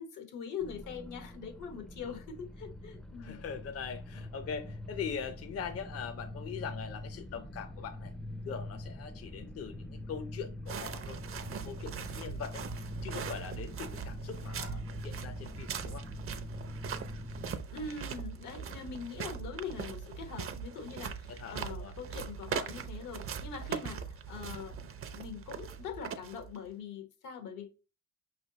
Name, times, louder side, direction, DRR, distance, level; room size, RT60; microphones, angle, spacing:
voice 1, 0.0-3.4 17.7-27.7, left 6 dB, 85° left, 1.0 m, -43 dB
sound 1, 0.6-17.6, left 1 dB, 5° left, 0.4 m, -44 dB
voice 2, 3.2-8.1 8.5-12.6 13.0-16.1 21.3-21.9, left 6 dB, 50° left, 0.6 m, -42 dB
sound 2, 10.7-26.7, right 7 dB, 45° right, 0.5 m, -41 dB
5.3 x 3.2 x 2.7 m
cardioid pair, 90°, 30 cm